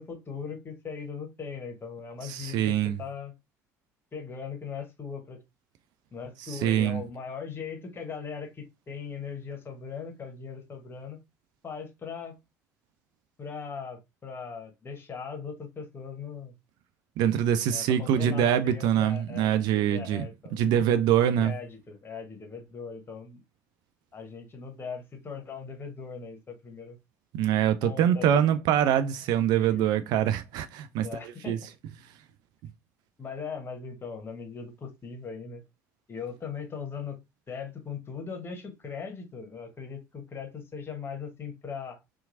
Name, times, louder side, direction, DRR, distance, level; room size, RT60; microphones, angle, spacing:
voice 1, 0.0-3.3 4.1-5.4 6.1-11.2 11.6-12.4 13.4-16.5 17.7-20.6 21.3-23.4 24.1-27.0 27.8-28.4 29.5-29.9 31.0-31.6 33.2-35.6 36.1-37.2 37.5-42.0, left 6 dB, 25° left, 1.1 m, -39 dB
voice 2, 2.2-3.0 6.5-7.0 17.2-20.2 20.5-21.5 27.3-31.1 31.5-31.6, right 10 dB, 50° right, 0.4 m, -24 dB
2.8 x 2.4 x 2.6 m
figure-of-eight pair, 60°, 9 cm